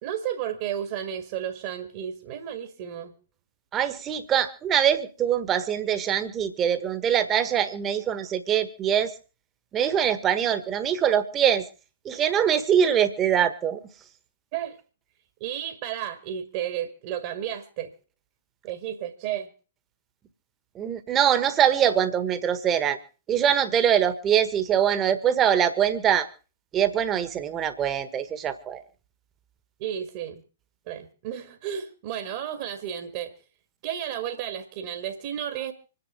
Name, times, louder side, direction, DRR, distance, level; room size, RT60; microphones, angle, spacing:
voice 1, 0.0-3.1 14.5-14.8 15.4-17.9 18.6-19.5 29.8-30.4 30.9-33.3 33.8-35.7, right 10 dB, 40° right, 7 dB, 1.8 m, -32 dB
voice 2, 3.7-9.1 9.7-11.6 12.0-13.8 20.7-23.0 23.3-26.3 26.7-28.8, right 9 dB, 20° right, 12 dB, 1.5 m, -23 dB
26.0 x 10.0 x 3.8 m, 0.35 s
figure-of-eight pair, 110°, 0 cm